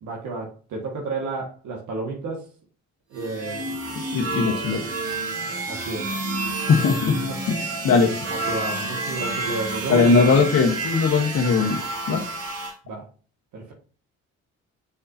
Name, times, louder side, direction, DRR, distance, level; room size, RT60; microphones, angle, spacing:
voice 1, 0.0-2.5 3.1-3.8 4.4-4.8 5.6-6.1 7.3-7.4 8.3-10.4 12.8-13.1 13.5-13.7, right 3 dB, 80° right, 1.7 m, -31 dB
sound 1, 3.1-12.7, right 2 dB, 55° right, 2.5 m, -29 dB
voice 2, 4.1-4.8 6.7-7.1 7.5-8.3 9.9-11.8 12.1-12.2, left 5 dB, 55° left, 1.2 m, -19 dB
6.6 x 5.6 x 2.7 m
cardioid pair, 90°, 30 cm